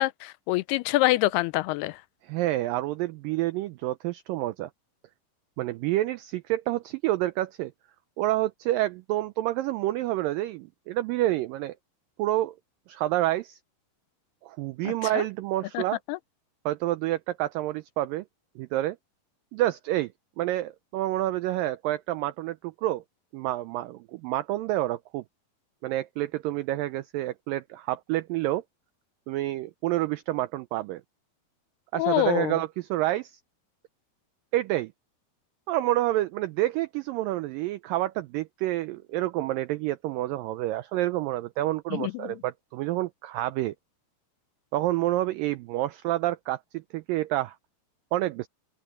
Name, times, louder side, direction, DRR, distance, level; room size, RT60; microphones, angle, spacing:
voice 1, 0.0-2.0 14.9-15.2 15.7-15.8 16.1-16.2 31.9-32.6 41.9-42.3, left 18 dB, 85° left, 2.6 m, -26 dB
voice 2, 2.2-4.7 5.6-7.7 8.2-11.8 12.2-12.6 12.9-13.6 14.4-16.0 16.7-18.3 18.6-19.0 19.5-20.1 20.4-23.0 23.3-25.2 25.8-28.6 29.3-31.0 31.9-33.4 34.5-34.9 35.7-43.7 44.7-47.6 48.1-48.5, right 15 dB, 90° right, 2.0 m, -28 dB
open air
omnidirectional pair, 4.6 m